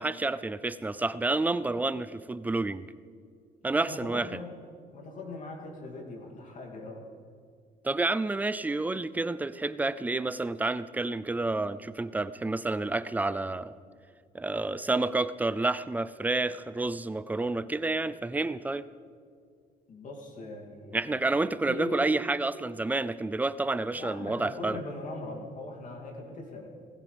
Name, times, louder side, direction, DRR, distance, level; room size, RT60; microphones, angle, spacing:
voice 1, 0.0-2.9 3.6-4.3 7.8-13.7 14.3-18.9 20.9-24.8, right 2 dB, 10° right, 15 dB, 0.4 m, -29 dB
voice 2, 3.8-4.5 4.9-7.0 19.9-21.2 21.7-22.1 23.9-26.7, left 2 dB, 50° left, 0 dB, 2.7 m, -40 dB
19.5 x 16.0 x 3.4 m, 2.2 s
cardioid pair, 110°, 17 cm